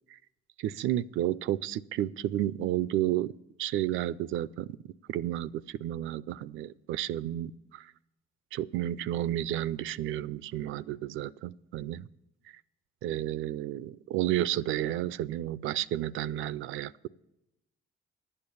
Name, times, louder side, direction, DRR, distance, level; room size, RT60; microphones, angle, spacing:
voice 1, 0.6-3.3 3.6-4.8 5.1-7.9 8.5-12.1 13.0-17.1, right 13 dB, 80° right, 19 dB, 0.4 m, -31 dB
11.5 x 8.8 x 6.9 m, 0.89 s
cardioid pair, 90°, 20 cm